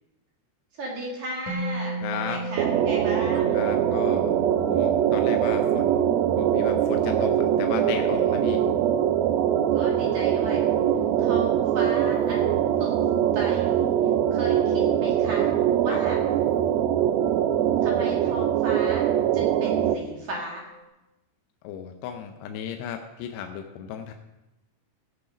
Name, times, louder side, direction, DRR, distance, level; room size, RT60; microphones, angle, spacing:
voice 1, 0.7-3.6 9.7-10.6 11.2-12.9 13.3-13.9 14.3-15.5 15.8-16.2 17.8-19.0 19.3-20.6, right 1 dB, 50° right, -2 dB, 2.7 m, -35 dB
sound 1, 1.5-20.8, right 1 dB, 50° left, 2.2 m, -39 dB
voice 2, 2.0-2.4 3.5-4.3 4.6-6.0 6.3-8.6 15.9-16.0 21.6-24.1, left 9 dB, 85° left, 5 dB, 2.8 m, -35 dB
sound 2, 2.6-20.0, right 10 dB, 85° right, 2.1 m, -23 dB
16.5 x 6.3 x 5.0 m, 0.96 s
omnidirectional pair, 4.9 m